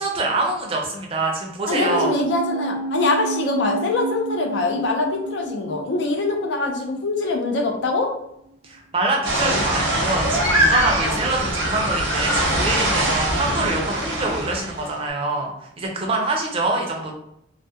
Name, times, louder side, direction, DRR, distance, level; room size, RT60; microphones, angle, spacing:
voice 1, 0.0-2.1 8.6-17.1, right 2 dB, 30° right, 0 dB, 0.4 m, -25 dB
voice 2, 1.7-8.1, left 3 dB, 70° left, 2 dB, 0.4 m, -23 dB
sound 1, 1.7-8.3 8.5-8.6, right 4 dB, 20° left, 0.6 m, -31 dB
sound 2, 9.2-14.9, right 1 dB, 75° right, 0.6 m, -22 dB
2.3 x 2.1 x 2.7 m, 0.76 s
head